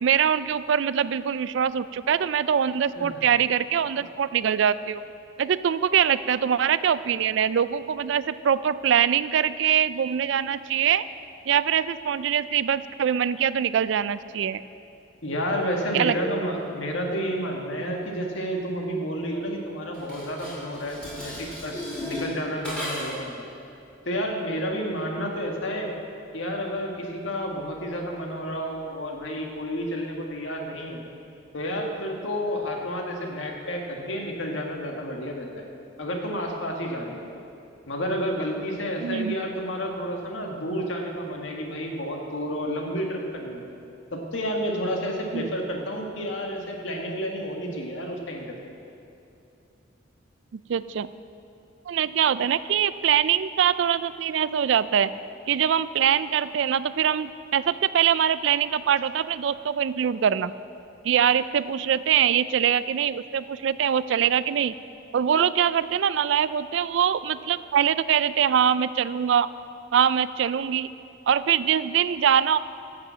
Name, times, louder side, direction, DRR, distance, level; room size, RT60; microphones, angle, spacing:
voice 1, 0.0-5.0 5.4-11.0 11.5-14.6 15.9-16.2 39.0-39.4 45.3-45.5 50.5-51.1 51.9-55.1 55.5-60.5 61.0-64.8 65.1-69.5 69.9-70.9 71.3-72.6, right 8 dB, 70° right, 16 dB, 0.3 m, -23 dB
voice 2, 15.2-23.4 24.0-25.9 26.3-31.0 31.5-35.6 36.0-37.2 37.9-43.7 44.1-48.5, equal, 80° left, 1 dB, 1.7 m, -30 dB
Dishes pots and pans, 19.9-23.3, left 1 dB, 5° left, 2.6 m, -35 dB
11.5 x 7.0 x 7.4 m, 2.6 s
head